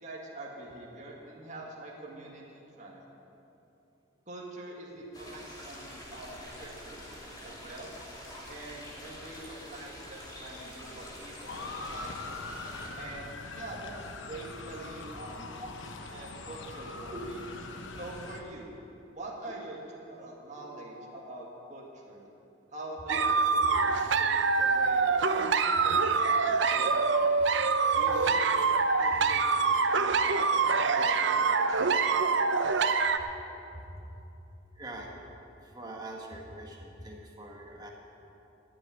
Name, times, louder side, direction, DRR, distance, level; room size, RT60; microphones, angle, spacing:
voice 1, 0.0-3.0 4.3-7.1 7.4-7.9 8.5-12.4 13.0-15.6 16.1-17.4 17.9-18.7 19.2-22.3 22.7-23.3 23.8-25.1 25.6-27.0 28.0-28.6 29.0-32.5, right 2 dB, 35° right, -3 dB, 1.9 m, -45 dB
sound 1, 5.1-12.9, equal, 20° left, 2.5 m, -46 dB
Motor vehicle (road) / Siren, 11.5-18.4, left 3 dB, 65° left, 1.1 m, -42 dB
sound 2, 23.1-33.2, right 4 dB, 60° right, 0.6 m, -25 dB
voice 2, 34.7-35.1 35.6-37.9, right 1 dB, 20° right, 0 dB, 1.6 m, -43 dB
13.5 x 7.8 x 9.6 m, 2.9 s
head